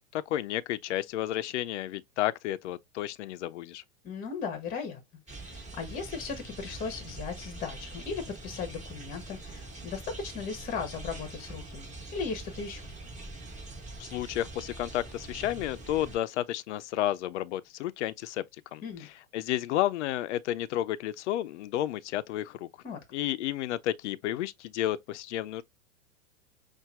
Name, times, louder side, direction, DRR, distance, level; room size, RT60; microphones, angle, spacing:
voice 1, 0.1-3.8 14.0-18.4 18.7-22.7 23.1-25.6, left 13 dB, 55° left, 0.6 m, -32 dB
voice 2, 4.0-5.0 5.3-12.9 18.8-19.1 22.8-23.0, left 5 dB, 20° left, 1.0 m, -37 dB
sound 1, 5.3-16.2, right 2 dB, 15° right, 2.0 m, -43 dB
5.7 x 2.6 x 2.4 m
hypercardioid pair, 120°, 42 cm